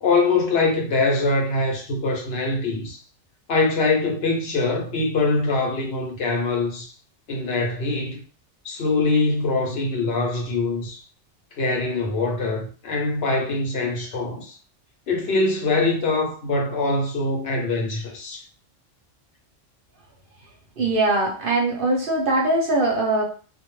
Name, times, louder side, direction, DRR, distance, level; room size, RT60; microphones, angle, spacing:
voice 1, 0.0-3.0 3.5-6.9 7.3-8.2 8.6-11.0 11.6-14.6 15.1-18.4, left 3 dB, 60° left, 0.8 m, -23 dB
voice 2, 20.8-23.2, right 2 dB, 55° right, 0.7 m, -21 dB
2.2 x 2.1 x 3.0 m
omnidirectional pair, 1.2 m